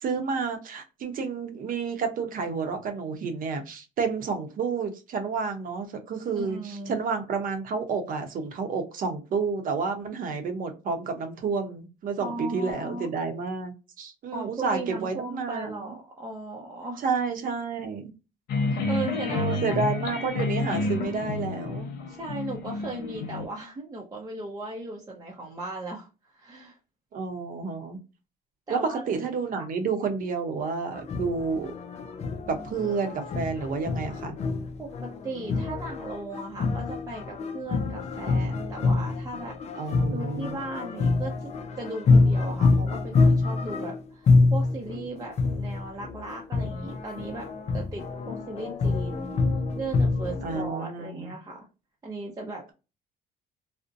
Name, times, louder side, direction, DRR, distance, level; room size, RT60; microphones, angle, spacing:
voice 1, 0.0-15.9 17.0-18.1 19.3-21.9 27.1-28.0 28.7-31.7 32.5-34.4 39.8-40.6 50.4-51.3, right 5 dB, 55° right, 6 dB, 0.7 m, -30 dB
voice 2, 6.3-7.0 12.2-13.1 14.3-17.0 18.7-19.8 22.1-26.8 28.7-29.0 29.6-29.7 34.8-34.9 35.2-41.5 41.8-47.5 47.7-49.3 49.8-51.7 52.0-52.6, right 2 dB, 20° right, -1 dB, 0.6 m, -37 dB
sound 1, 18.5-23.5, left 3 dB, 70° left, 0.9 m, -29 dB
sound 2, 30.9-50.7, left 3 dB, 40° left, 0.4 m, -26 dB
2.5 x 2.1 x 2.5 m, 0.30 s
cardioid pair, 110°, 17 cm